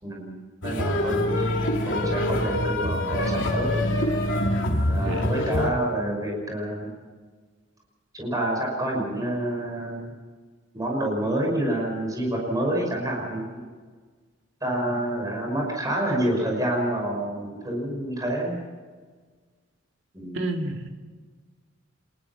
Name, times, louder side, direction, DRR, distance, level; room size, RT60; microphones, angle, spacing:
voice 1, 0.0-3.8 4.9-6.9 8.1-10.1 10.7-13.6 14.6-18.6 20.1-20.4, right 1 dB, 15° right, 0 dB, 5.9 m, -28 dB
sound 1, 0.6-5.7, left 1 dB, 65° left, 3.1 m, -25 dB
voice 2, 20.3-20.9, right 2 dB, 65° right, 3 dB, 2.7 m, -29 dB
26.5 x 20.5 x 6.0 m, 1.5 s
head